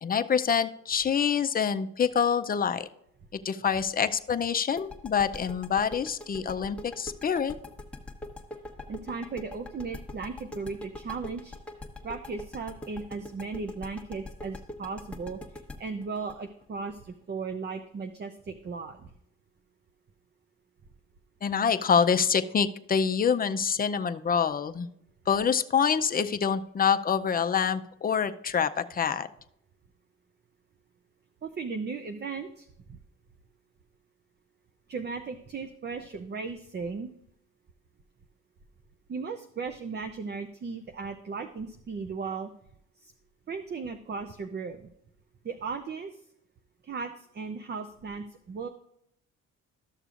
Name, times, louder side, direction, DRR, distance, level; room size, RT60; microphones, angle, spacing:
voice 1, 0.0-2.9 3.4-7.5 21.4-24.9 25.3-29.3, left 7 dB, 30° left, 10 dB, 0.5 m, -26 dB
sound 1, 4.8-17.5, left 2 dB, 5° left, 1.1 m, -42 dB
voice 2, 8.9-11.5 12.0-19.1 31.4-33.0 34.9-37.1 39.1-42.5 43.0-43.1 43.5-44.9 45.4-46.2 46.8-48.7, right 4 dB, 35° right, 7 dB, 0.6 m, -36 dB
13.0 x 6.7 x 2.5 m, 0.74 s
cardioid pair, 90°, 30 cm